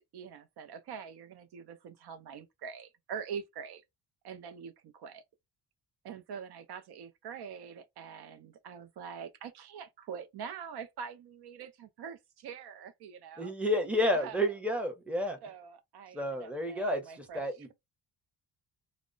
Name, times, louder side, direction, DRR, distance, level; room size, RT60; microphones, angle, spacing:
voice 1, 0.1-3.8 4.2-5.2 6.0-13.5 14.1-14.4 15.4-17.4, right 7 dB, 65° right, 0.6 m, -44 dB
voice 2, 13.4-15.4 16.1-17.7, left 1 dB, 5° right, 0.6 m, -30 dB
2.1 x 2.0 x 3.7 m
cardioid pair, 110°, 41 cm